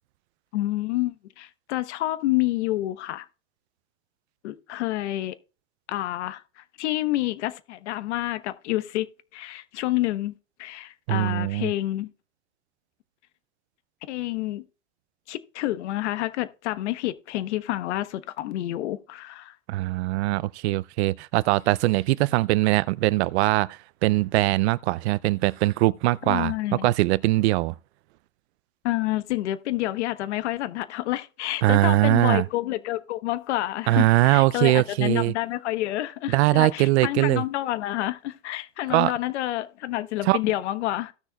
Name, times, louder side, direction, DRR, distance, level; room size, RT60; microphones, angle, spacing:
voice 1, 0.5-3.3 4.4-5.3 5.9-10.3 10.6-12.1 14.1-14.6 15.3-19.5 26.2-26.9 28.8-41.1, left 15 dB, 75° left, 1.2 m, -28 dB
voice 2, 11.1-11.7 19.7-26.5 26.8-27.7 31.6-32.4 33.9-35.3 36.3-37.4 38.9-39.1 40.3-40.4, right 18 dB, 65° right, 0.5 m, -21 dB
17.0 x 6.3 x 2.3 m
supercardioid pair, 135°, 35 cm